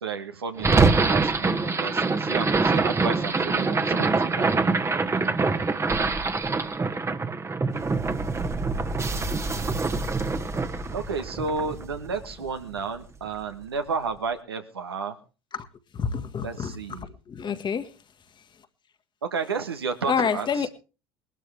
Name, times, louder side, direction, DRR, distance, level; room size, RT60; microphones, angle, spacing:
voice 1, 0.0-4.5 10.9-15.2 16.4-17.1 19.2-20.7, right 5 dB, 85° right, 6 dB, 1.4 m, -32 dB
sound 1, 0.6-12.8, right 3 dB, 20° right, 1.3 m, -25 dB
voice 2, 16.0-16.7 17.3-17.9 20.1-20.7, left 6 dB, 35° left, 10 dB, 1.6 m, -27 dB
20.0 x 12.5 x 3.4 m, 0.33 s
figure-of-eight pair, 60°, 13 cm